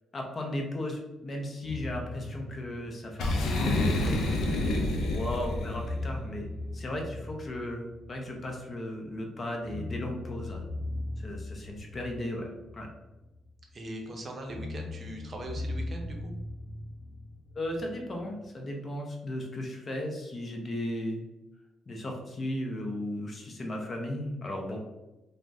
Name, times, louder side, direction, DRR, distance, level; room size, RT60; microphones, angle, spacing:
voice 1, 0.1-4.3 4.9-6.5 6.7-10.6 11.2-12.9 17.5-21.2 21.9-24.8, left 1 dB, 35° left, 1 dB, 0.6 m, -36 dB
sound 1, 1.6-4.4 4.8-9.1 9.6-13.7 14.5-18.4, left 2 dB, 5° right, 1.1 m, -39 dB
Boom, 3.2-5.9, left 2 dB, 75° left, 0.5 m, -28 dB
voice 2, 13.7-16.3, right 1 dB, 40° right, 1 dB, 0.6 m, -40 dB
2.5 x 2.1 x 3.4 m, 1.0 s
cardioid pair, 90°, 0 cm